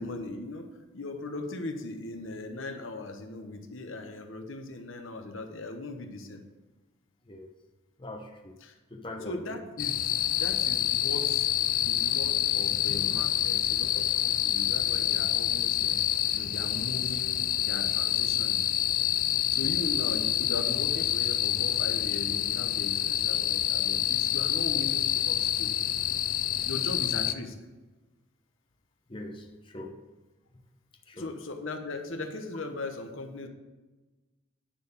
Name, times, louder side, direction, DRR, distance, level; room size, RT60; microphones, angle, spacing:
voice 1, 0.0-6.4 8.6-8.7 9.2-10.1 10.4-11.5 11.8-16.0 16.3-17.4 17.7-18.6 19.5-25.7 26.6-27.6 31.1-33.5, left 2 dB, 70° left, 5 dB, 1.0 m, -38 dB
voice 2, 8.0-8.5 8.9-9.6 19.5-19.7 29.1-29.9 31.1-31.3, left 1 dB, 25° left, 3 dB, 0.9 m, -42 dB
sound 1, 9.8-27.3, left 12 dB, 40° left, 0.3 m, -27 dB
10.0 x 4.7 x 7.0 m, 1.2 s
head